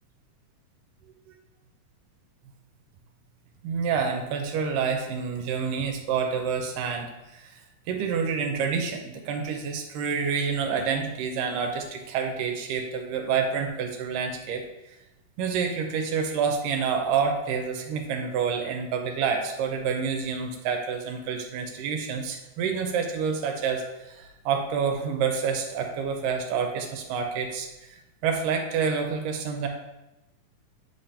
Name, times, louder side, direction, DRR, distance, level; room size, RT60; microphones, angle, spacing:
voice 1, 3.6-7.1 7.3-7.6 7.9-14.6 15.4-29.7, right 6 dB, 85° right, 3 dB, 2.3 m, -28 dB
8.0 x 4.2 x 3.3 m, 0.98 s
omnidirectional pair, 3.9 m